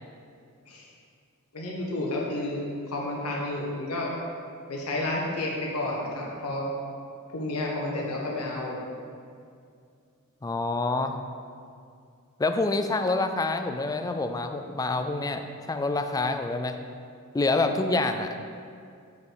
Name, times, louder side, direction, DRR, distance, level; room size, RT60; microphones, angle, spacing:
voice 1, 1.5-4.1 4.7-6.7 7.3-8.8, left 2 dB, 90° left, -3 dB, 1.4 m, -31 dB
voice 2, 10.4-11.2 12.4-16.8 17.3-18.3, left 3 dB, 15° left, 7 dB, 0.3 m, -27 dB
7.0 x 5.2 x 4.7 m, 2.3 s
head